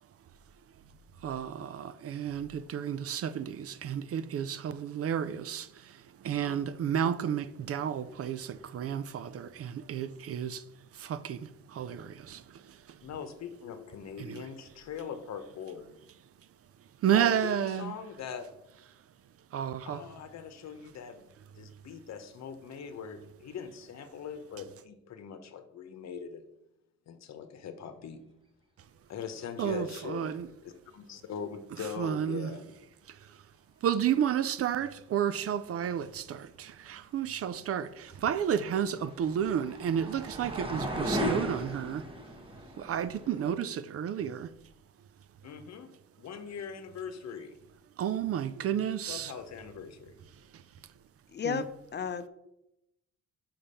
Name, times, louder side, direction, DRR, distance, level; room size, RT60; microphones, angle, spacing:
voice 1, 1.2-10.7 10.9-13.0 14.2-14.4 17.0-18.0 19.5-20.0 29.6-30.5 31.8-32.5 33.1-33.4 33.8-42.1 42.8-44.5 48.0-49.3 50.5-50.6 51.4-51.6, right 9 dB, 50° right, 0.5 m, -32 dB
voice 2, 13.0-16.0 17.1-18.5 19.9-21.3 21.5-26.4 27.1-28.2 29.1-30.4 30.6-32.7 45.4-45.9 46.2-47.5 49.1-50.1, left 7 dB, 60° left, 1.0 m, -41 dB
sound 1, 38.2-43.5, equal, 15° right, 1.2 m, -36 dB
voice 3, 51.3-51.6 51.9-52.3, left 7 dB, 35° left, 0.7 m, -32 dB
5.8 x 5.1 x 5.6 m
cardioid pair, 90°, 30 cm